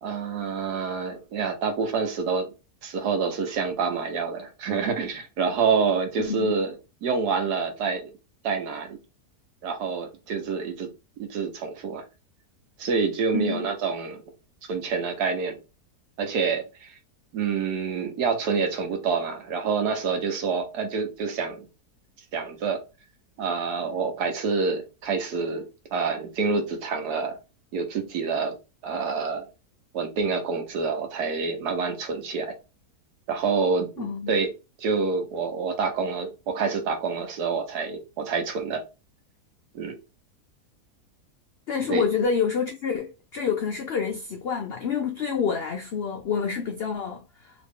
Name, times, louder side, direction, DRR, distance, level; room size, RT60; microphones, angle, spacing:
voice 1, 0.0-2.5 2.8-6.8 7.0-8.1 8.4-9.0 9.6-10.9 11.2-12.0 12.8-14.2 14.7-15.6 16.2-17.0 17.3-21.6 22.3-22.8 23.4-27.4 27.7-28.6 28.8-29.5 29.9-32.5 33.3-34.5 34.8-38.8 39.7-40.0 41.9-42.0, right 5 dB, 80° right, 1.4 m, -27 dB
voice 2, 6.2-6.5 13.3-13.7 34.0-34.3 41.7-47.5, left 6 dB, 90° left, 0.5 m, -28 dB
3.0 x 2.9 x 3.5 m
omnidirectional pair, 1.7 m